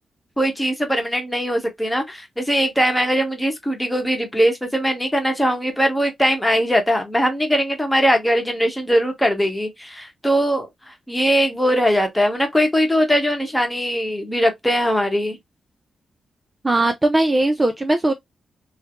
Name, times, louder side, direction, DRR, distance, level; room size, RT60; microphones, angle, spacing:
voice 1, 0.4-15.4, equal, 10° left, 1.0 m, -20 dB
voice 2, 16.6-18.1, right 2 dB, 25° right, 0.4 m, -19 dB
3.2 x 2.1 x 2.5 m
cardioid pair, 70°, 0 cm